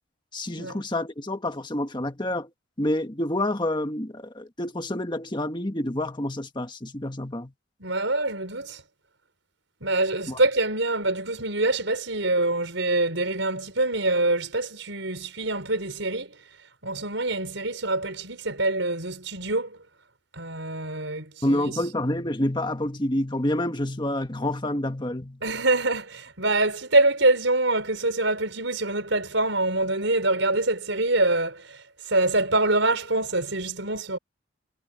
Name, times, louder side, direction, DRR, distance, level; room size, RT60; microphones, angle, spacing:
voice 1, 0.3-2.5 2.8-7.5 10.3-10.4 21.4-25.4, left 1 dB, 25° left, 1.6 m, -28 dB
voice 2, 7.8-8.8 9.8-16.3 16.8-19.8 20.3-21.6 25.4-31.8 32.1-34.2, right 2 dB, 75° right, 5.5 m, -25 dB
head